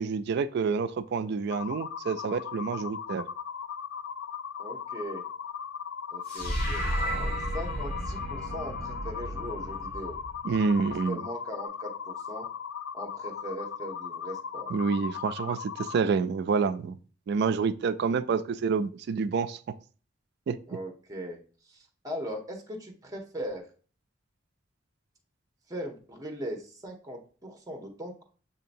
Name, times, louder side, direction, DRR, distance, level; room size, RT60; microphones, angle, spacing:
voice 1, 0.0-3.2 10.4-11.2 14.7-17.0 17.3-19.6 20.5-20.6, right 5 dB, 60° right, 14 dB, 0.3 m, -28 dB
sound 1, 1.5-16.0, left 7 dB, 75° left, 0.3 m, -38 dB
voice 2, 4.6-5.2 6.1-10.2 11.1-12.5 12.9-14.7 20.7-21.4 21.7-23.7 25.7-28.2, equal, 20° right, 2 dB, 0.9 m, -39 dB
sound 2, 6.3-10.7, right 1 dB, 55° left, 2.0 m, -33 dB
7.2 x 2.8 x 2.6 m, 0.40 s
head